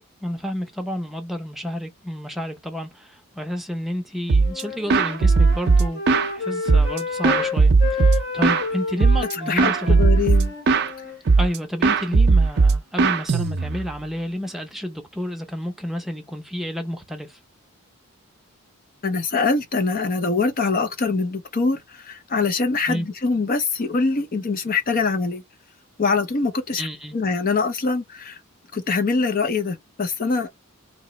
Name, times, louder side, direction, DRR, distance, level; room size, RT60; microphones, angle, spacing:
voice 1, 0.0-6.0 6.3-10.1 11.4-17.4 22.9-23.1 26.8-27.2, equal, ahead, 0.6 m, -30 dB
sound 1, 4.3-4.6 4.9-6.3 6.7-8.7 9.0-9.3 9.6-10.9 11.3-11.6 11.8-13.9, right 4 dB, 50° right, 0.5 m, -17 dB
Wind instrument woodwind instrument, 4.4-11.2, left 4 dB, 60° left, 1.9 m, -31 dB
voice 2, 9.3-10.5 19.0-25.4 26.0-26.9 27.1-28.4 28.7-30.7, left 4 dB, 40° left, 0.5 m, -23 dB
2.9 x 2.9 x 4.2 m
head